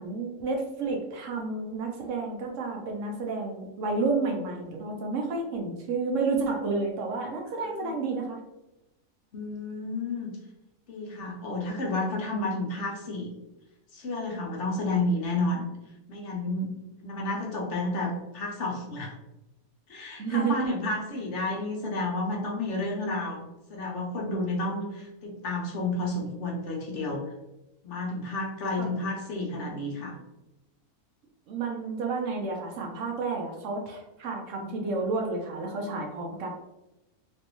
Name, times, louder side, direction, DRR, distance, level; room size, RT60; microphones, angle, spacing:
voice 1, 0.0-8.4 20.2-20.6 28.8-28.9 31.5-36.5, right 3 dB, 70° right, 1 dB, 0.9 m, -30 dB
voice 2, 9.3-10.3 10.9-13.3 13.9-15.7 16.1-16.7 17.0-19.1 19.9-23.4 23.7-27.3 27.8-30.2, left 2 dB, 60° left, -1 dB, 0.9 m, -31 dB
3.2 x 2.5 x 2.9 m, 0.95 s
omnidirectional pair, 1.5 m